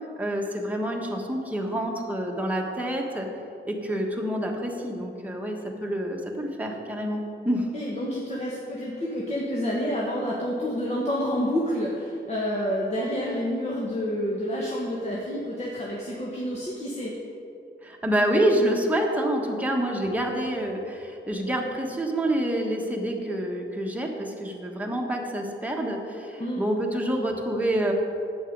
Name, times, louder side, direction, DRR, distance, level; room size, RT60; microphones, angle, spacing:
voice 1, 0.2-3.3 3.6-7.7 17.8-27.9, right 1 dB, 5° right, 0 dB, 1.3 m, -27 dB
voice 2, 7.7-17.1 26.4-26.6, equal, 35° left, -5 dB, 1.4 m, -29 dB
11.0 x 8.2 x 5.3 m, 2.5 s
wide cardioid pair, 150°, 20 cm